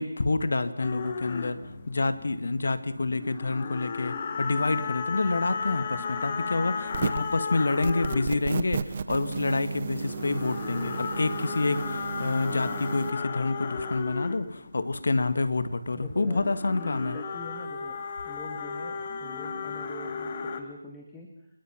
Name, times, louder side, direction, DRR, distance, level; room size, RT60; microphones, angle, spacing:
voice 1, 0.0-1.6 1.9-17.2, left 3 dB, 60° left, 12 dB, 2.0 m, -28 dB
sound 1, 0.8-2.6 2.9-8.5 9.2-15.0 16.0-20.6, left 5 dB, 30° left, 2.4 m, -35 dB
sound 2, 6.9-7.3 7.8-13.1, right 6 dB, 35° right, 1.2 m, -34 dB
voice 2, 15.9-21.3, left 2 dB, 10° left, 0 dB, 2.3 m, -45 dB
27.0 x 21.5 x 6.0 m, 0.80 s
figure-of-eight pair, 160°, 0 cm